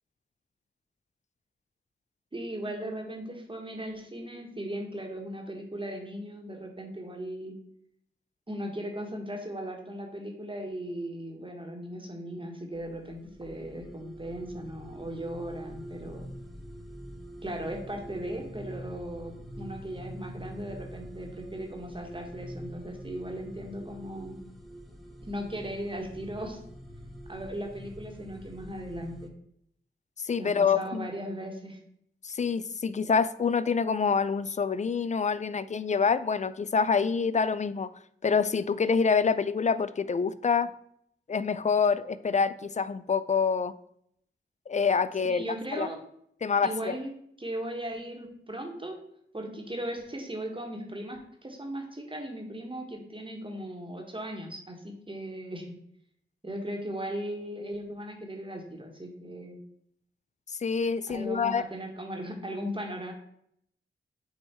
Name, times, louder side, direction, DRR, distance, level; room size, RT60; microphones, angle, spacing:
voice 1, 2.3-7.6 8.5-16.3 17.4-24.4 25.2-26.6 27.3-29.1 30.4-31.8 45.2-46.0 46.6-47.1 47.4-49.0 49.3-55.8 56.4-59.6 61.1-63.1, right 1 dB, 25° right, 1 dB, 1.5 m, -37 dB
sound 1, 12.7-29.3, equal, ahead, 1.1 m, -45 dB
voice 2, 30.2-31.1 32.2-37.9 38.2-40.7 41.3-43.7 44.7-45.4 45.7-45.9 46.4-47.0 60.6-61.6, left 5 dB, 35° left, 15 dB, 0.4 m, -26 dB
8.0 x 2.7 x 4.3 m, 0.71 s
cardioid pair, 45°, 21 cm